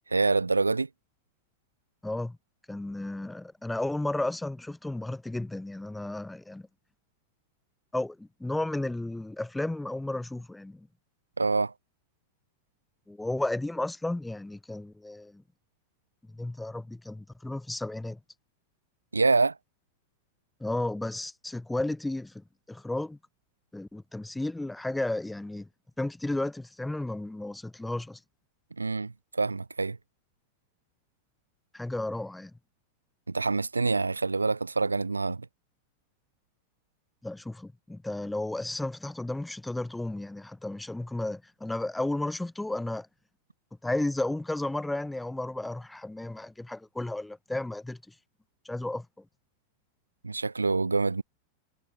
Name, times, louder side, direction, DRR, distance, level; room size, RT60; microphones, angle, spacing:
voice 1, 0.1-0.9 11.4-11.7 19.1-19.6 28.8-30.0 33.3-35.5 50.2-51.2, right 3 dB, 80° right, 0.4 m, -26 dB
voice 2, 2.0-2.4 2.7-6.6 7.9-10.9 13.1-15.4 16.3-18.2 20.6-23.2 23.7-25.7 26.0-28.2 31.7-32.5 37.2-43.1 43.8-48.0 48.6-49.1, left 2 dB, 5° left, 0.7 m, -33 dB
figure-of-eight pair, 90°, 0 cm